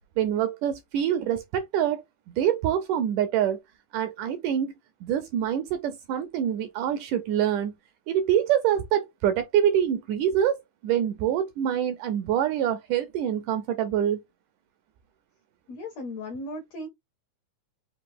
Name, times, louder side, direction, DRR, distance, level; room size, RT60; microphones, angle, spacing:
voice 1, 0.2-3.6 3.9-4.7 5.0-7.7 8.1-14.2, right 10 dB, 80° right, 1.9 m, -25 dB
voice 2, 15.7-16.9, left 1 dB, 75° left, 1.5 m, -36 dB
5.5 x 2.4 x 3.6 m
omnidirectional pair, 4.1 m